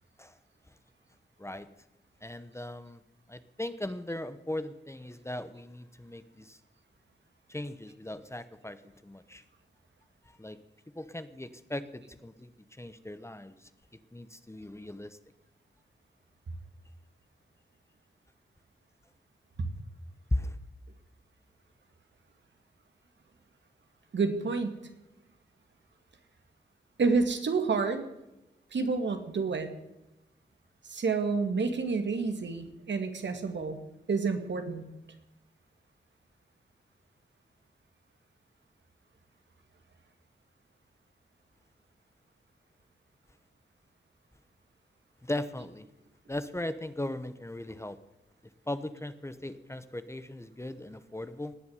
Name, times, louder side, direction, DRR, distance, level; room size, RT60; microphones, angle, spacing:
voice 1, 2.2-3.0 3.3-6.6 7.5-9.4 10.4-10.6 10.9-13.7 14.1-15.2 20.3-20.6 45.2-45.9 46.3-48.0 48.7-51.5, left 1 dB, 15° left, 12 dB, 1.1 m, -38 dB
voice 2, 24.1-24.8 27.0-28.0 28.7-29.7 30.9-33.8 34.1-34.8, right 4 dB, 70° right, 7 dB, 2.2 m, -29 dB
18.5 x 7.0 x 9.5 m, 0.92 s
cardioid pair, 70°, 19 cm